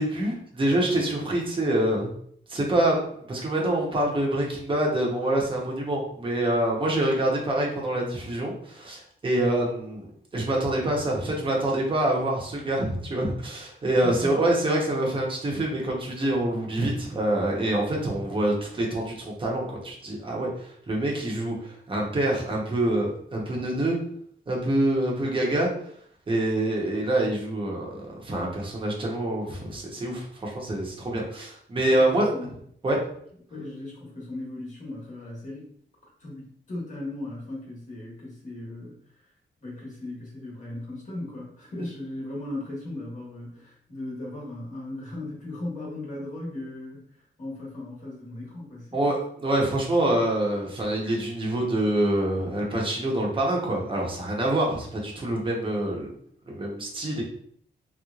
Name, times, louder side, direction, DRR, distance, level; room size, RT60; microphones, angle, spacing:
voice 1, 0.0-2.1 2.5-10.1 10.3-24.0 24.5-25.7 26.3-32.3 32.8-33.0 48.9-49.2 49.4-56.1 56.5-57.2, right 1 dB, 25° right, -2 dB, 1.0 m, -26 dB
voice 2, 14.0-14.4 31.2-31.3 31.8-32.0 32.3-32.5 33.5-35.7 36.2-39.0 39.6-47.0 47.4-49.2, left 1 dB, 40° left, -4 dB, 1.4 m, -37 dB
3.4 x 3.2 x 2.4 m, 0.63 s
wide cardioid pair, 135°, 19 cm